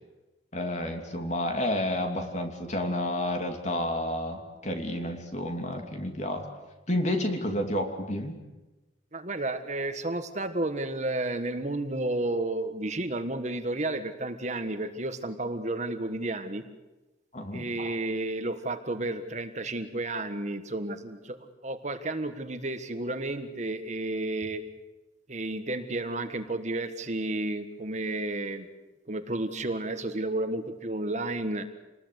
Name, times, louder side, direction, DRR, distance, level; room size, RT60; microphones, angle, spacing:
voice 1, 0.5-6.4 6.9-8.4 17.3-17.7, left 1 dB, 40° left, 4 dB, 3.0 m, -30 dB
voice 2, 9.1-16.6 17.5-21.4 21.6-24.6 25.3-28.7 29.1-31.6, right 2 dB, 40° right, 8 dB, 1.6 m, -32 dB
27.5 x 20.0 x 8.2 m, 1.1 s
head